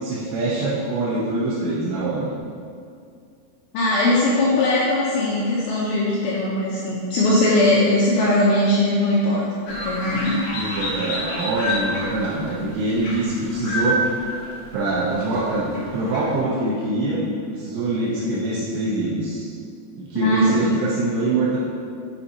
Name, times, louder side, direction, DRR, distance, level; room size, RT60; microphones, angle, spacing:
voice 1, 0.0-2.4 10.5-14.0 14.7-17.2 17.5-19.5 20.0-21.6, right 2 dB, 80° right, -7 dB, 2.8 m, -24 dB
voice 2, 3.7-10.8 20.2-20.7, left 1 dB, 85° left, -6 dB, 2.2 m, -20 dB
sound 1, 9.7-16.4, equal, 65° left, 2.3 m, -29 dB
7.0 x 5.3 x 2.8 m, 2.3 s
omnidirectional pair, 5.2 m